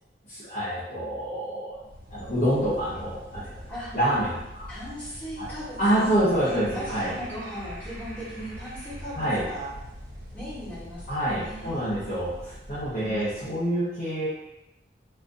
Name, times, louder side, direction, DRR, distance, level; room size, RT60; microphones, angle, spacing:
voice 1, 0.3-1.7 2.1-3.5 3.9-4.7 5.4-5.5 5.8-7.1 9.2-9.4 11.1-14.3, right 1 dB, 45° left, -12 dB, 0.9 m, -27 dB
sound 1, 1.7-13.6, equal, 50° right, 0.9 m, -43 dB
voice 2, 4.7-9.7 10.3-11.9 13.0-13.4, equal, 10° left, -9 dB, 1.1 m, -38 dB
4.2 x 2.5 x 2.6 m, 0.90 s
head